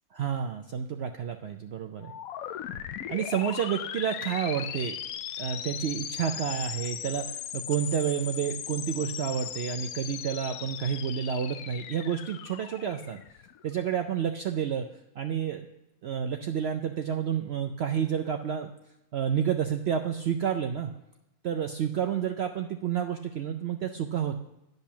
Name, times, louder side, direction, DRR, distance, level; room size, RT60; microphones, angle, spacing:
voice 1, 0.1-2.1 3.1-5.0 5.4-13.2 13.6-14.9 15.2-15.7 16.0-18.7 19.1-20.9 21.4-24.4, right 8 dB, 65° right, 5 dB, 0.7 m, -30 dB
sound 1, 2.0-13.7, left 9 dB, 80° left, 1.0 m, -38 dB
10.0 x 5.4 x 6.9 m, 0.89 s
omnidirectional pair, 1.5 m